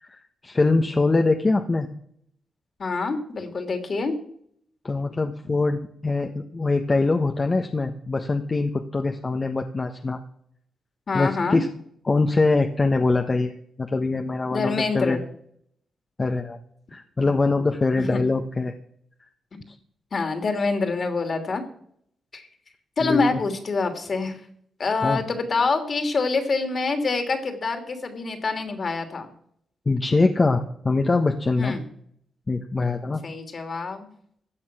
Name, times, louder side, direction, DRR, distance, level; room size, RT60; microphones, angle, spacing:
voice 1, 0.0-1.9 4.8-10.2 11.1-11.7 12.0-15.2 16.2-16.6 16.9-18.7 23.0-23.4 25.0-25.2 29.9-31.8 32.5-33.2, left 3 dB, 35° left, 4 dB, 1.2 m, -23 dB
voice 2, 2.8-4.2 5.4-5.5 11.1-11.6 14.5-15.2 18.0-18.2 19.5-19.6 20.1-21.6 22.3-22.5 23.0-24.4 24.8-29.3 31.6-31.8 33.2-34.1, left 4 dB, 50° left, 6 dB, 2.9 m, -26 dB
16.0 x 9.3 x 6.2 m, 0.67 s
cardioid pair, 65°, 0 cm